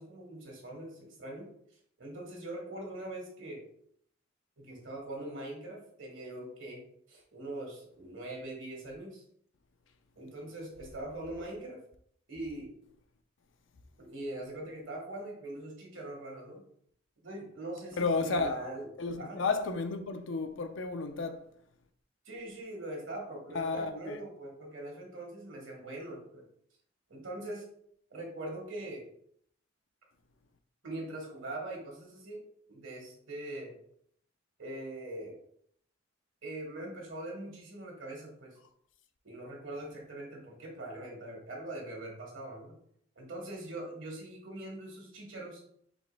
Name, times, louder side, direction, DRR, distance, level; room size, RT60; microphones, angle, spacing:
voice 1, 0.0-1.5 2.0-3.6 4.6-6.8 7.1-9.2 10.1-11.8 12.3-12.7 14.0-16.6 17.2-18.9 19.2-19.4 22.2-26.4 27.1-27.6 28.1-29.0 30.8-32.4 32.7-33.7 34.6-35.4 36.4-38.6 39.2-42.7 43.1-45.6, right 1 dB, 70° right, 1.7 m, -42 dB
voice 2, 18.0-18.6 19.0-21.4 23.5-24.2, left 4 dB, 65° left, 0.5 m, -32 dB
5.1 x 3.1 x 3.3 m
head